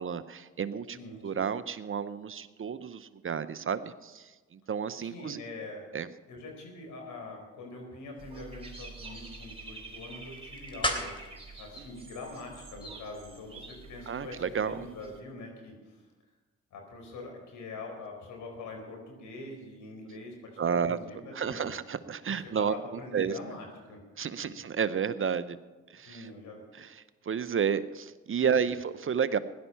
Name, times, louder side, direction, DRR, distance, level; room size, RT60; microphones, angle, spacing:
voice 1, 0.0-1.0 1.2-5.4 5.9-6.1 11.8-11.9 14.1-14.8 20.6-21.0 21.3-22.7 23.1-23.3 24.2-25.6 25.9-26.3 26.8-26.9 27.2-29.4, right 7 dB, 40° right, 14 dB, 0.9 m, -31 dB
voice 2, 0.9-1.4 5.0-5.8 6.3-11.3 11.6-16.0 16.7-21.8 22.2-24.0 26.0-26.6 28.4-28.8, left 2 dB, 70° left, 1 dB, 4.7 m, -44 dB
sound 1, 7.9-13.0, left 1 dB, 15° left, 3.2 m, -40 dB
Dog / Bird, 8.2-15.2, right 3 dB, 20° right, 3.8 m, -47 dB
16.5 x 11.5 x 5.7 m, 1.2 s
hypercardioid pair, 50°, 31 cm